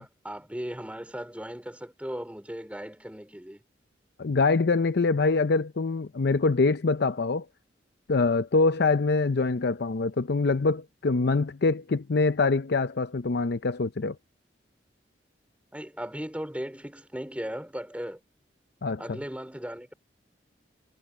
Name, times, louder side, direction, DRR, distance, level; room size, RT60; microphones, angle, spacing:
voice 1, 0.0-3.6 15.7-18.2 19.0-19.9, equal, 10° right, 4.4 m, -37 dB
voice 2, 4.2-7.5 8.1-14.2 18.8-19.0, left 3 dB, 60° left, 0.6 m, -24 dB
head